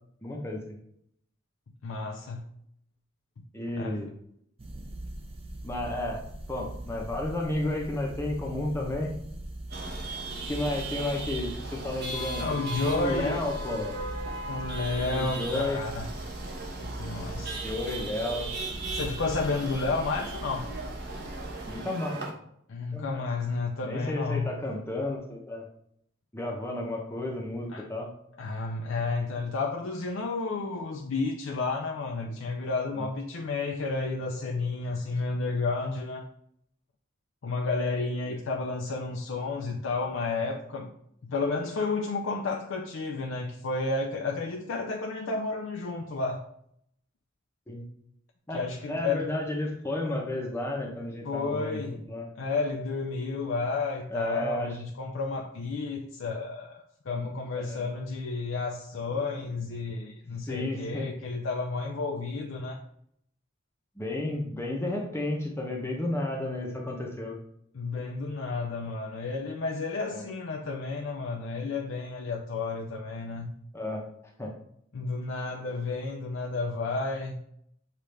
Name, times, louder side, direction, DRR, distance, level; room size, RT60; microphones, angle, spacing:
voice 1, 0.2-0.6 3.5-4.1 5.6-6.2 6.5-9.1 10.5-12.4 12.9-14.0 14.9-15.8 17.6-18.5 21.7-22.2 22.9-23.3 23.8-25.6 26.3-28.1 32.9-33.1 38.3-38.4 47.7-47.8 48.5-48.6 48.9-52.3 54.1-54.8 57.2-57.3 57.6-57.8 60.5-61.1 64.0-67.4 70.1-70.2 73.7-74.0 74.4-74.5, left 1 dB, 10° left, 0.7 m, -32 dB
voice 2, 1.8-2.5 3.8-4.1 12.4-13.4 14.5-16.1 16.8-17.6 18.9-20.7 22.7-24.5 27.7-27.9 28.4-36.2 37.4-40.9 41.2-46.4 48.5-49.3 51.2-52.1 52.4-62.8 67.7-73.5 74.9-77.4, left 3 dB, 70° left, 0.5 m, -31 dB
sound 1, 4.6-21.8, right 1 dB, 30° right, 0.5 m, -40 dB
Chatter / Vehicle horn car horn honking / Traffic noise roadway noise, 9.7-22.3, right 2 dB, 50° right, 0.9 m, -38 dB
6.7 x 2.4 x 3.2 m
head